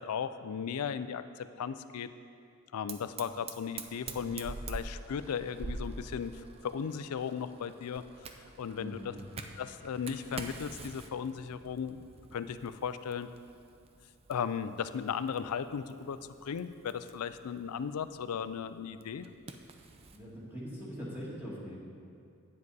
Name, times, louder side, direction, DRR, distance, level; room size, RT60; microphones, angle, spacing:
voice 1, 0.0-2.1 2.7-6.3 6.6-8.0 8.6-9.2 9.6-12.0 12.3-13.3 14.3-19.3, left 7 dB, 90° left, 12 dB, 0.4 m, -36 dB
Fire, 2.9-20.2, right 3 dB, 25° right, 0.4 m, -47 dB
voice 2, 8.8-9.2 20.1-21.8, equal, 10° right, -7 dB, 1.8 m, -42 dB
9.5 x 7.5 x 4.0 m, 2.5 s
head